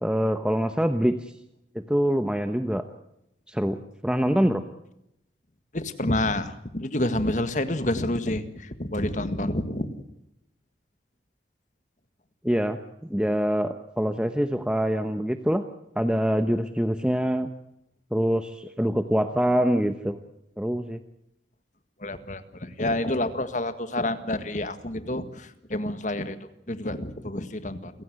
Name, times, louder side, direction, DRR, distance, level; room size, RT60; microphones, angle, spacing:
voice 1, 0.0-1.3 1.7-2.8 3.5-4.6 12.4-12.8 13.1-15.6 16.0-17.5 18.1-20.2 20.6-21.0, equal, 5° right, 8 dB, 1.0 m, -25 dB
voice 2, 5.7-10.0 22.0-26.4 26.7-27.9, left 1 dB, 45° left, 11 dB, 1.8 m, -28 dB
29.0 x 16.0 x 8.0 m, 0.80 s
head